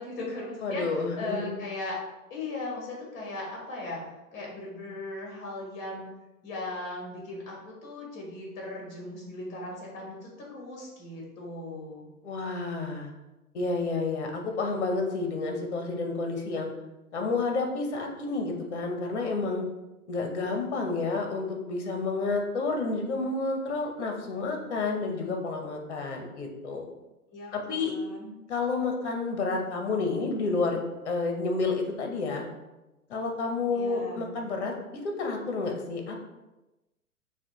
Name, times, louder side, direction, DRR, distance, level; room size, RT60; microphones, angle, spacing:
voice 1, 0.0-0.9 1.2-2.0 2.3-4.0 4.3-6.0 6.4-12.1 27.3-28.4 33.7-34.3, left 2 dB, 20° left, -2 dB, 1.4 m, -38 dB
voice 2, 0.6-1.5 12.2-13.1 13.5-16.7 17.1-19.6 20.1-26.9 27.5-27.9 28.5-30.8 31.0-32.5 33.1-36.2, left 3 dB, 45° left, 3 dB, 0.9 m, -30 dB
5.8 x 2.4 x 3.0 m, 1.0 s
figure-of-eight pair, 120°, 46 cm